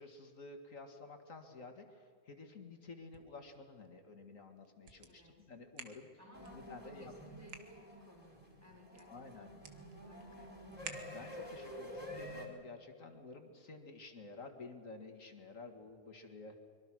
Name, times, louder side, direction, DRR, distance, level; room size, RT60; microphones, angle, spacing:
voice 1, 0.0-6.1 6.5-7.4 9.1-9.5 11.1-16.6, left 3 dB, 55° left, 5 dB, 2.2 m, -52 dB
sound 1, 2.8-11.6, right 5 dB, 90° right, 2.1 m, -56 dB
voice 2, 5.0-5.4 6.2-10.7, equal, 10° right, -2 dB, 5.9 m, -60 dB
sound 2, 6.3-12.5, equal, 15° left, 4.2 m, -49 dB
24.5 x 23.0 x 6.2 m, 2.2 s
omnidirectional pair, 1.7 m